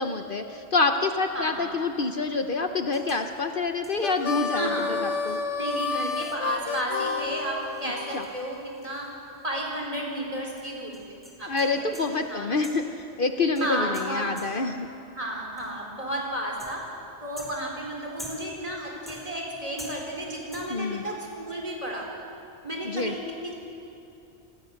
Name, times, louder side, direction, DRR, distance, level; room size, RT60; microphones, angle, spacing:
voice 1, 0.0-5.4 8.1-8.2 11.5-14.9 20.7-21.0 22.8-23.1, left 3 dB, 50° left, 6 dB, 1.0 m, -27 dB
voice 2, 1.3-1.8 4.5-5.0 5.6-9.1 9.4-12.6 13.6-14.5 15.1-16.8 17.2-22.1 22.6-23.5, right 1 dB, 30° right, -1 dB, 4.3 m, -33 dB
sound 1, 2.9-3.3 3.8-4.1 4.8-4.9 5.2-5.3 5.7-9.5 9.7-9.8 10.6-12.2 12.6-13.0 13.6-14.8 15.6-15.9 16.6-17.0 17.4-18.7 19.1-19.5 19.8-20.3 20.5-20.9, equal, ahead, 4.2 m, -47 dB
Harmonica, 4.0-8.3, left 5 dB, 85° left, 1.2 m, -30 dB
29.0 x 19.5 x 6.5 m, 2.7 s
omnidirectional pair, 1.2 m